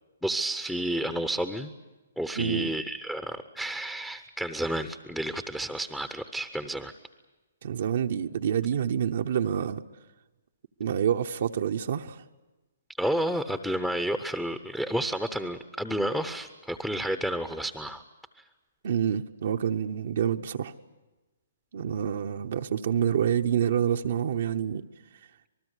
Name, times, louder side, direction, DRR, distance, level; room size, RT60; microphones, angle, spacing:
voice 1, 0.2-1.7 2.2-6.9 13.0-18.0 18.3-18.4, right 1 dB, 5° left, 8 dB, 0.8 m, -31 dB
voice 2, 2.4-2.7 7.6-9.8 10.8-12.2 18.8-20.7 21.7-24.8, right 8 dB, 60° right, 5 dB, 0.9 m, -27 dB
26.5 x 19.5 x 8.2 m, 1.1 s
hypercardioid pair, 150°, 0 cm